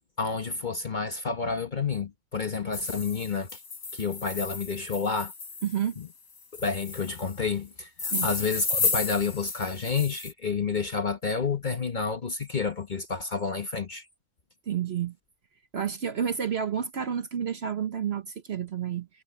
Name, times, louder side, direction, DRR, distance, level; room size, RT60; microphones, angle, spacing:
voice 1, 0.2-3.6 3.9-5.3 6.0-6.1 6.6-14.0, left 5 dB, 35° left, 1.0 m, -30 dB
sound 1, 2.7-5.9 6.5-7.3 8.0-10.3, left 4 dB, 70° left, 4.1 m, -33 dB
voice 2, 5.6-6.0 8.0-8.3 14.7-15.2 15.7-19.1, right 8 dB, 50° right, 1.0 m, -30 dB
omnidirectional pair, 1.6 m